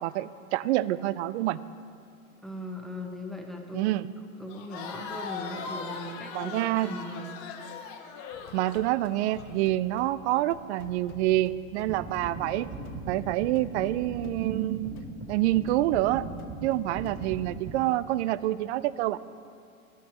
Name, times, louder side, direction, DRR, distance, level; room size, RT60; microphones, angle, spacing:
voice 1, 0.0-1.6 3.7-4.1 6.3-7.0 8.5-12.7 13.1-15.0 15.3-16.3 16.6-19.2, right 15 dB, 55° right, 17 dB, 0.5 m, -27 dB
voice 2, 2.4-3.9 4.4-7.2, left 1 dB, ahead, 2 dB, 1.1 m, -39 dB
Crowd, 4.5-9.5, left 5 dB, 50° left, 1.4 m, -40 dB
sound 1, 8.3-17.7, left 4 dB, 90° left, 0.8 m, -49 dB
sound 2, 11.9-17.8, right 4 dB, 30° right, 2.6 m, -39 dB
17.5 x 10.0 x 3.0 m, 2.3 s
hypercardioid pair, 105°, 42 cm